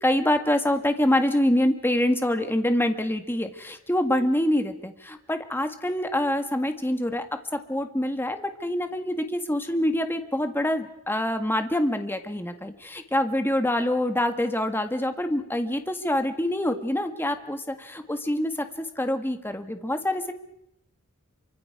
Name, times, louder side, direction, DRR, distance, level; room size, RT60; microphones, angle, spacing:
voice 1, 0.0-7.3 7.5-20.3, left 1 dB, 10° left, 7 dB, 1.7 m, -25 dB
28.0 x 25.0 x 4.9 m, 0.77 s
head